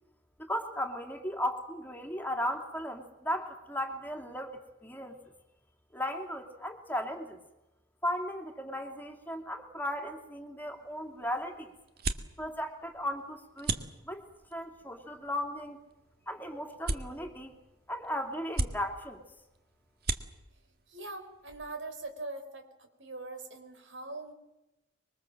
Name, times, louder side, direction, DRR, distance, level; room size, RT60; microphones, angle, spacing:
voice 1, 0.5-5.2 5.9-7.4 8.0-11.7 12.4-13.8 14.0-14.2 14.5-15.8 16.3-17.5 17.9-19.2, equal, 10° left, 5 dB, 2.6 m, -36 dB
sound 1, 10.6-22.1, right 3 dB, 55° right, 1.8 m, -40 dB
voice 2, 20.9-24.3, right 2 dB, 80° right, 6 dB, 4.6 m, -42 dB
26.0 x 23.0 x 7.6 m, 0.97 s
head